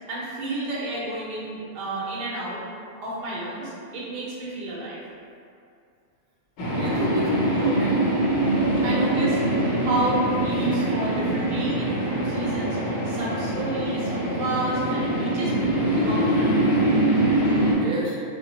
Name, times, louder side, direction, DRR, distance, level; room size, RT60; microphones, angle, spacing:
voice 1, 0.1-2.6 3.0-5.0 8.8-12.8 13.0-16.6, right 2 dB, 55° right, -6 dB, 0.7 m, -31 dB
sound 1, 6.6-17.8, right 1 dB, 90° left, 1.0 m, -23 dB
voice 2, 6.7-8.1 12.6-12.7 17.7-18.2, equal, 80° right, -6 dB, 1.0 m, -31 dB
2.1 x 2.1 x 2.8 m, 2.3 s
omnidirectional pair, 1.3 m